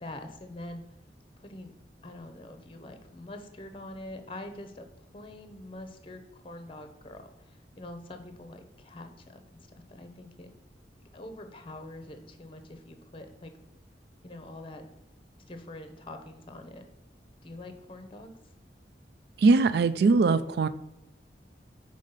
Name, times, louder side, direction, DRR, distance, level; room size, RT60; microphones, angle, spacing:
voice 1, 0.0-0.8 1.4-9.6 9.9-10.5 11.1-13.5 14.2-14.8 15.5-16.8 17.4-18.3, left 1 dB, 30° left, 7 dB, 0.7 m, -44 dB
voice 2, 19.4-20.7, right 3 dB, 65° right, 14 dB, 0.4 m, -21 dB
5.1 x 3.7 x 5.6 m, 0.93 s
head